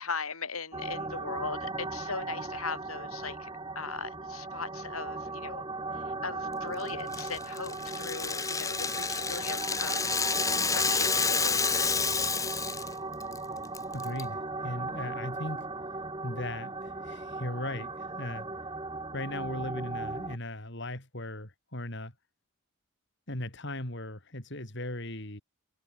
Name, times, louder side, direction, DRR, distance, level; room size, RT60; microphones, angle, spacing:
voice 1, 0.0-3.5 3.8-5.6 6.1-10.1 10.7-12.2, left 4 dB, 85° left, 7.2 m, -39 dB
sound 1, 0.7-20.4, right 3 dB, 20° right, 2.4 m, -37 dB
Rattle (instrument), 7.1-12.9 13.2-13.4 13.7-14.2, left 5 dB, 15° left, 0.9 m, -29 dB
voice 2, 13.9-15.7 16.2-18.5 19.1-22.1 23.3-25.4, left 1 dB, 55° left, 4.5 m, -38 dB
head